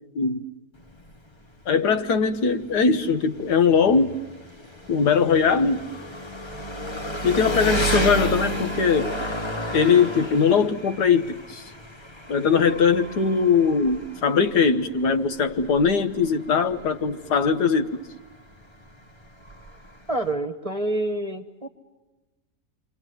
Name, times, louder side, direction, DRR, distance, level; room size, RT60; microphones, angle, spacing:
Engine, 0.8-20.3, equal, 20° left, 1.1 m, -32 dB
voice 1, 1.7-4.2 4.9-5.8 7.2-9.1 9.7-11.6 12.3-18.0, left 5 dB, 80° left, 1.8 m, -21 dB
voice 2, 20.1-21.7, right 1 dB, 25° right, 1.2 m, -27 dB
28.0 x 26.0 x 7.8 m
omnidirectional pair, 1.7 m